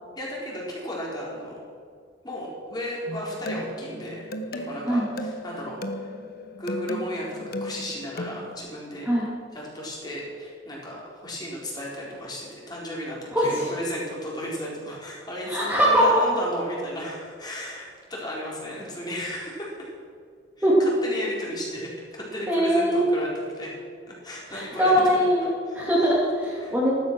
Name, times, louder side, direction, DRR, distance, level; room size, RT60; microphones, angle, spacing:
voice 1, 0.1-1.6 2.2-6.1 6.6-9.1 9.5-19.9 20.6-23.7 24.1-25.1 25.6-26.1 26.6-26.7, equal, 20° left, -4 dB, 4.2 m, -34 dB
sound 1, 3.1-8.5, equal, 50° left, 1.1 m, -35 dB
voice 2, 13.3-13.7 15.5-16.2 20.6-20.8 22.5-23.1 24.5-26.9, equal, 10° right, -6 dB, 2.6 m, -21 dB
14.5 x 13.0 x 6.2 m, 2.2 s
head